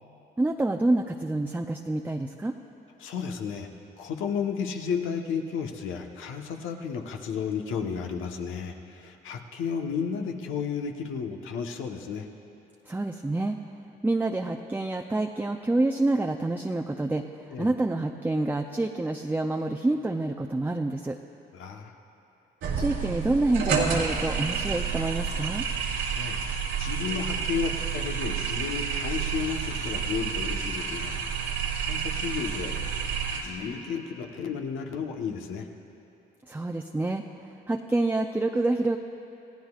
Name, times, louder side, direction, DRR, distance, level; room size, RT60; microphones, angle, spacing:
voice 1, 0.4-2.5 12.9-13.6 14.0-21.2 22.8-25.7 36.5-37.2 37.7-39.0, right 2 dB, 10° right, 4 dB, 0.5 m, -27 dB
voice 2, 3.0-3.7 4.0-12.3 17.5-17.7 21.5-21.9 26.0-26.4 26.7-32.9 33.3-35.7, left 6 dB, 85° left, 2 dB, 1.2 m, -33 dB
sound 1, 22.6-33.4, right 6 dB, 85° right, 2.3 m, -29 dB
28.0 x 15.5 x 2.4 m, 2.9 s
cardioid pair, 90°, 20 cm